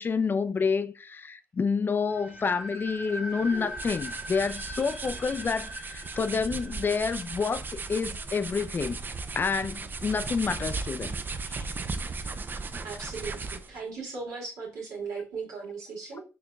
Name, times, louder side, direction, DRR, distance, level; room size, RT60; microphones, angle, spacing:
voice 1, 0.0-9.0 9.3-11.2 11.5-11.7 16.1-16.2, left 5 dB, 35° left, 0.3 m, -29 dB
sound 1, 2.1-9.0, equal, 15° right, 1.4 m, -42 dB
sound 2, 3.4-13.8, right 3 dB, 35° right, 0.4 m, -37 dB
voice 2, 12.8-16.2, right 4 dB, 80° right, 2.0 m, -37 dB
4.5 x 2.9 x 2.2 m
cardioid pair, 70°, 6 cm